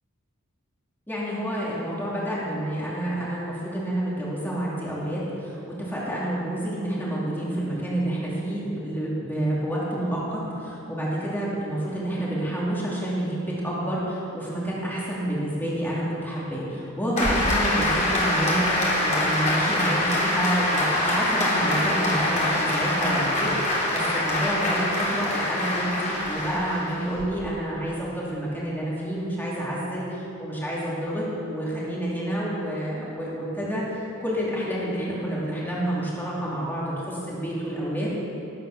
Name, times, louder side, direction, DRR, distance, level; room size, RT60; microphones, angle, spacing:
voice 1, 1.1-30.1 30.4-38.1, right 1 dB, 10° left, -7 dB, 2.9 m, -29 dB
Applause, 17.2-27.2, left 1 dB, 35° left, 3.6 m, -24 dB
18.5 x 9.2 x 6.8 m, 3.0 s
head